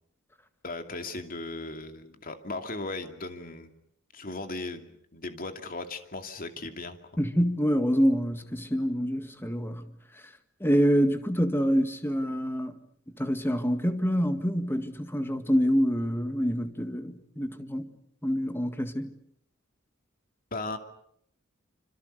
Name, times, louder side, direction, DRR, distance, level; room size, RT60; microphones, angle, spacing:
voice 1, 0.6-3.7 4.1-7.0 20.5-20.8, left 2 dB, 45° left, 2.6 m, -37 dB
voice 2, 7.2-9.8 10.6-12.8 13.2-17.9 18.2-19.1, equal, 10° left, 1.9 m, -26 dB
26.5 x 26.5 x 6.7 m
head